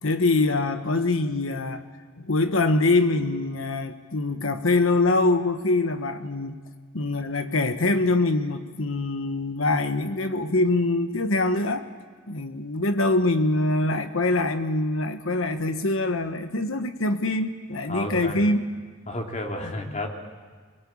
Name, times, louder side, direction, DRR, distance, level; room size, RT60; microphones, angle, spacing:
voice 1, 0.0-1.8 2.2-6.6 6.9-11.9 12.3-18.6 19.6-19.7, left 2 dB, 85° left, 8 dB, 1.3 m, -24 dB
voice 2, 17.9-18.4 19.1-20.1, left 1 dB, 40° left, 2 dB, 2.8 m, -31 dB
24.0 x 22.0 x 8.7 m, 1.5 s
head